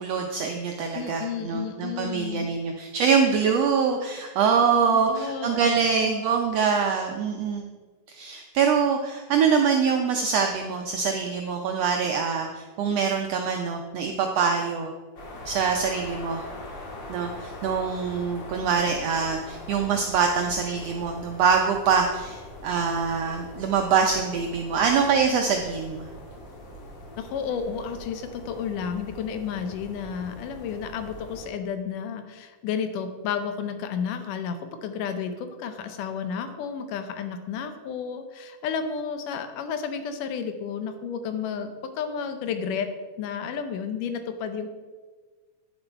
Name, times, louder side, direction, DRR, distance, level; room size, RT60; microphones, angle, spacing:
voice 1, 0.0-7.6 8.1-14.9 15.4-16.4 17.1-26.1, right 6 dB, 80° right, 3 dB, 1.4 m, -24 dB
voice 2, 0.9-2.5 4.9-6.1 27.2-42.9 43.2-44.7, left 7 dB, 85° left, 8 dB, 2.4 m, -32 dB
sound 1, 15.2-31.5, left 1 dB, 45° left, 1.8 m, -42 dB
9.6 x 6.5 x 4.5 m, 1.4 s
omnidirectional pair, 3.6 m